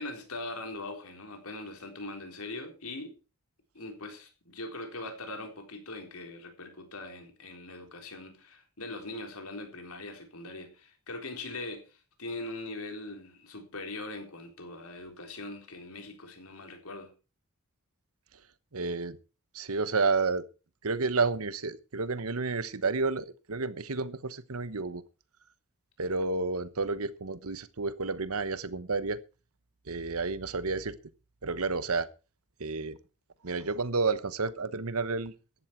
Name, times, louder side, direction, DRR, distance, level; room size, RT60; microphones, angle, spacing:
voice 1, 0.0-3.1 3.7-17.1, left 2 dB, 75° left, 4.0 m, -41 dB
voice 2, 18.7-19.2 19.5-20.4 20.8-25.0 26.0-29.2 29.9-31.0 31.4-32.1 32.6-33.0 33.4-35.3, right 4 dB, 75° right, 1.1 m, -30 dB
15.0 x 11.5 x 4.5 m
head